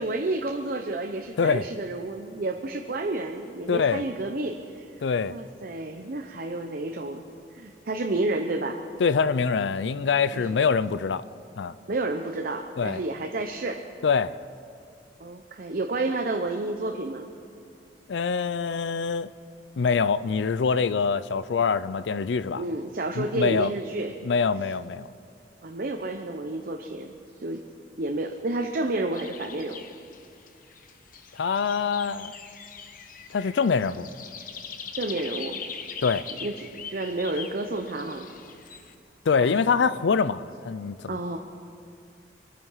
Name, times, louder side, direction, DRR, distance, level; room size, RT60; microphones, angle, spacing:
voice 1, 0.0-4.9 5.3-7.2 7.5-8.8 10.3-10.6 11.9-13.8 15.2-17.3 22.5-24.1 25.6-27.6 28.0-29.8 35.0-35.6 36.4-38.3 39.4-39.9 41.1-41.4, right 2 dB, 55° right, 4 dB, 0.7 m, -30 dB
voice 2, 3.7-4.0 5.0-5.4 9.0-11.2 11.6-11.7 12.8-13.0 14.0-14.4 18.1-19.3 19.8-22.6 23.2-23.7 24.2-25.1 31.3-32.3 33.3-34.1 36.0-36.3 39.3-41.2, left 5 dB, 70° left, 16 dB, 0.4 m, -24 dB
sound 1, 29.1-38.9, left 6 dB, 50° left, 0.9 m, -41 dB
24.5 x 9.3 x 5.7 m, 2.4 s
head